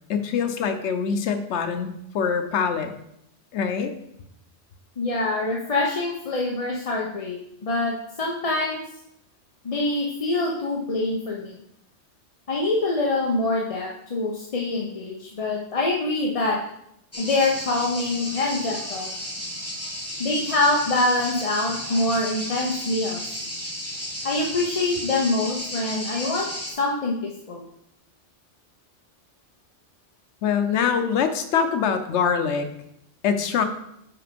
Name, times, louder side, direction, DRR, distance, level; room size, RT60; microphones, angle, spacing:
voice 1, 0.1-2.9 3.5-3.9 10.0-10.1 30.4-32.7 33.2-33.6, left 6 dB, 90° left, 8 dB, 1.0 m, -24 dB
voice 2, 5.0-8.8 9.6-11.6 12.5-16.6 17.2-19.1 20.2-23.2 24.2-26.5 26.8-27.6, left 2 dB, 35° left, -1 dB, 0.7 m, -25 dB
sound 1, 17.1-26.7, equal, 15° left, 1.3 m, -33 dB
6.0 x 4.9 x 5.1 m, 0.77 s
omnidirectional pair, 1.1 m